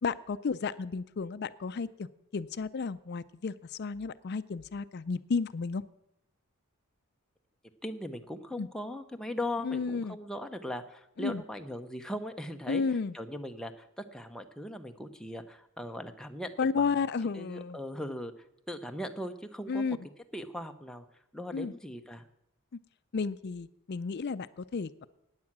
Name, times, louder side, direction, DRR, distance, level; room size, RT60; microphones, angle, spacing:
voice 1, 0.0-2.1 2.3-5.8 8.6-8.7 9.6-10.2 11.2-11.4 12.7-13.1 16.6-17.8 19.7-20.0 21.5-21.7 23.1-25.1, left 5 dB, 50° left, 14 dB, 0.4 m, -32 dB
voice 2, 7.8-16.8 17.3-18.3 18.7-20.0 20.3-21.1 21.3-22.3, left 1 dB, 5° left, 5 dB, 0.7 m, -39 dB
15.0 x 9.6 x 6.0 m, 0.83 s
head